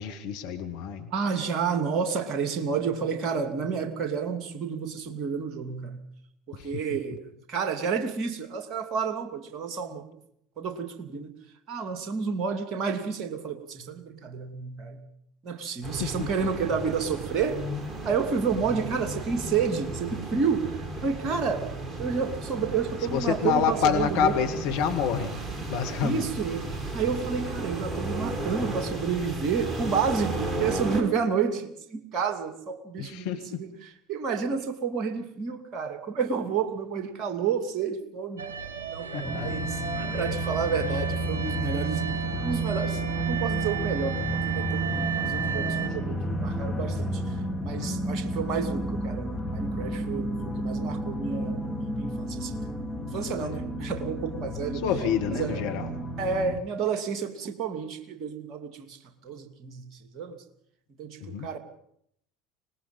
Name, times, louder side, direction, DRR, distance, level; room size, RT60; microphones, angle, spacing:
voice 1, 0.0-1.1 6.5-7.0 16.0-16.8 23.1-25.4 25.7-26.3 33.0-33.6 39.1-39.8 47.8-47.9 53.4-53.6 54.8-55.9 61.2-61.5, left 7 dB, 55° left, 5 dB, 1.9 m, -28 dB
voice 2, 1.1-6.0 6.5-10.2 10.6-11.3 11.7-15.0 15.4-17.6 18.0-21.7 22.0-24.3 26.0-26.7 26.9-33.3 33.5-33.7 34.1-38.4 38.9-39.8 40.1-42.1 42.4-52.6 53.0-54.8 55.3-55.8 56.2-60.4 61.0-61.6, right 6 dB, 40° right, 7 dB, 2.6 m, -30 dB
sound 1, 15.8-31.0, right 2 dB, 20° right, 4.5 m, -34 dB
sound 2, 38.4-45.9, right 6 dB, 70° right, 1.7 m, -34 dB
sound 3, 39.2-56.6, right 1 dB, 10° left, 3.5 m, -31 dB
25.0 x 20.0 x 5.6 m, 0.71 s
figure-of-eight pair, 70°, 0 cm